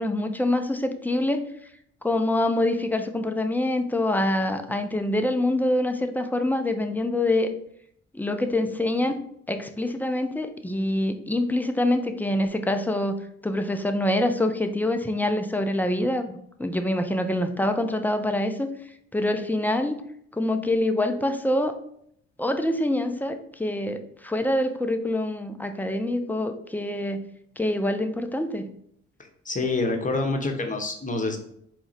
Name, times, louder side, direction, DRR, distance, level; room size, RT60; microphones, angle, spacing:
voice 1, 0.0-1.4 2.0-7.5 8.1-9.2 9.5-13.2 13.4-18.7 19.1-20.0 20.3-21.8 22.4-27.2 27.6-28.7, left 1 dB, 5° left, 6 dB, 0.5 m, -25 dB
voice 2, 29.2-31.4, left 3 dB, 25° left, 4 dB, 0.9 m, -27 dB
4.7 x 2.1 x 4.0 m, 0.69 s
hypercardioid pair, 50°, 32 cm